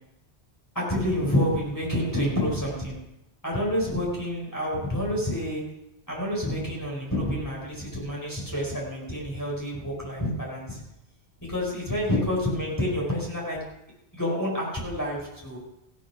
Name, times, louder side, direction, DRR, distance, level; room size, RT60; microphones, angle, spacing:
voice 1, 0.7-3.0 3.4-5.6 6.1-10.8 11.5-13.6 14.1-15.6, left 1 dB, 15° left, -4 dB, 4.6 m, -28 dB
16.0 x 9.3 x 6.0 m, 0.88 s
omnidirectional pair, 1.2 m